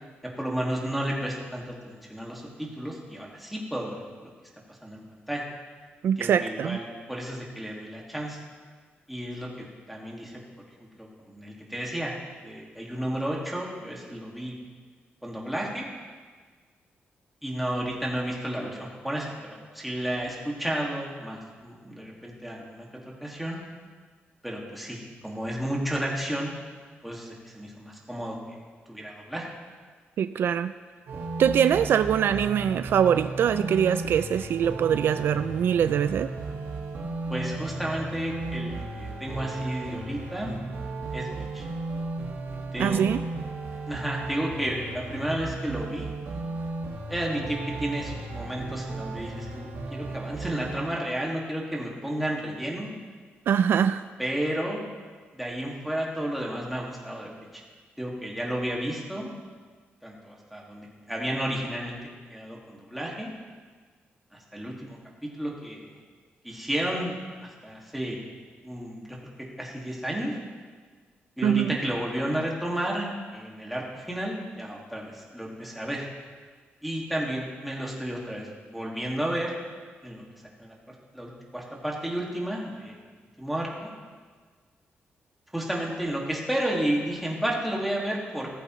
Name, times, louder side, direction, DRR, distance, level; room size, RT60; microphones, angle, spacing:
voice 1, 0.4-4.3 4.7-5.4 6.2-8.4 9.1-10.3 11.0-12.1 12.4-14.6 15.2-15.9 17.4-22.9 23.2-23.6 24.4-26.5 27.0-28.4 28.9-29.5 31.8-31.9 37.3-40.5 41.1-41.7 42.7-43.1 43.9-46.1 47.1-52.9 54.2-54.8 55.3-57.6 58.0-59.3 60.0-62.0 62.3-63.3 64.3-65.9 66.4-68.2 68.6-69.2 69.6-70.4 71.4-76.1 76.8-79.5 80.0-80.2 80.6-83.0 83.4-83.9 85.5-88.6, right 1 dB, ahead, -3 dB, 2.0 m, -32 dB
voice 2, 6.0-6.8 30.2-30.7 31.4-36.3 42.8-43.2 53.5-54.0 71.4-71.8, right 8 dB, 65° right, 12 dB, 0.3 m, -23 dB
sound 1, 31.1-50.9, right 3 dB, 90° right, 1.7 m, -35 dB
15.5 x 13.5 x 3.1 m, 1.5 s
wide cardioid pair, 155°, 4 cm